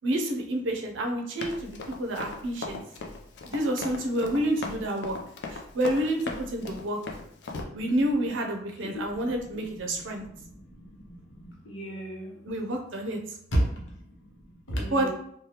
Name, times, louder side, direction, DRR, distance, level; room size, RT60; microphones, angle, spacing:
voice 1, 0.0-2.8 3.5-5.2 5.5-7.0 7.7-10.3 12.5-13.2 14.9-15.1, right 1 dB, 90° right, 3 dB, 0.6 m, -29 dB
Run, 1.4-7.6, left 3 dB, 60° left, 0.4 m, -38 dB
voice 2, 7.6-8.1 8.8-12.4 13.5-15.1, right 1 dB, 90° left, -2 dB, 0.9 m, -34 dB
3.2 x 2.2 x 2.9 m, 0.69 s
head